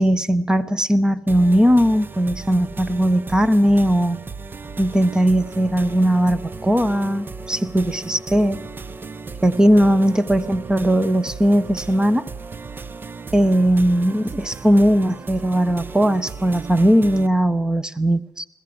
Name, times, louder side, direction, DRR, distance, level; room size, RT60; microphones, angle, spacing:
voice 1, 0.0-4.2 4.8-8.6 9.4-12.2 13.3-18.5, equal, 10° right, 15 dB, 1.1 m, -18 dB
sound 1, 1.3-17.3, right 4 dB, 25° right, 0.8 m, -36 dB
20.5 x 16.0 x 8.0 m, 0.95 s
supercardioid pair, 85°, 8 cm